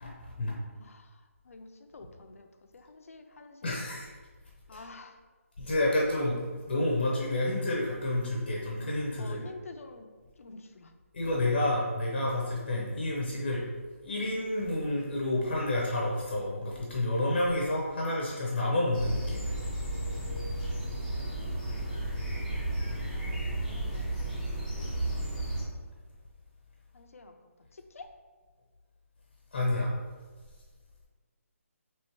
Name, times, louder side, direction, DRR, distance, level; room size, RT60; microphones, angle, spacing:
voice 1, 0.8-3.8 4.7-5.2 9.2-10.1 10.4-10.9 23.1-24.3 26.9-27.3 27.7-28.1, left 3 dB, 70° left, 5 dB, 0.5 m, -49 dB
voice 2, 3.6-4.1 4.7-4.8 5.6-6.4 6.7-9.4 11.1-13.6 14.0-19.5 29.5-29.9, left 1 dB, 35° left, -3 dB, 0.7 m, -29 dB
sound 1, 18.9-25.6, right 1 dB, ahead, 0.8 m, -33 dB
4.4 x 3.0 x 3.0 m, 1.4 s
hypercardioid pair, 175°, 8 cm